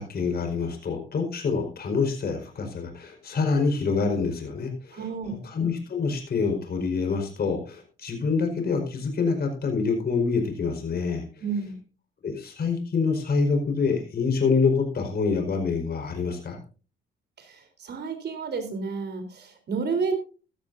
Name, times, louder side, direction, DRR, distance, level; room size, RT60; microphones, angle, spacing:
voice 1, 0.0-5.0 5.4-11.4 12.2-16.6, left 4 dB, 50° left, 3 dB, 4.8 m, -26 dB
voice 2, 4.9-5.4 11.4-11.8 17.4-20.1, right 5 dB, 55° right, 7 dB, 3.8 m, -30 dB
15.5 x 13.5 x 2.7 m, 0.36 s
cardioid pair, 90°, 20 cm